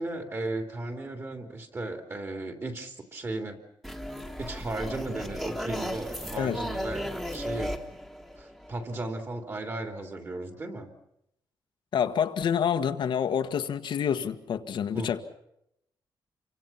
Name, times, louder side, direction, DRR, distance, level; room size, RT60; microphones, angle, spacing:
voice 1, 0.0-3.6 4.4-7.8 8.4-10.9 14.9-15.2, right 2 dB, 30° right, 3.2 m, -35 dB
sound 1, 3.8-9.0, equal, ahead, 1.9 m, -35 dB
voice 2, 11.9-15.2, left 8 dB, 70° left, 1.5 m, -27 dB
29.0 x 24.5 x 5.8 m
wide cardioid pair, 155°, 8 cm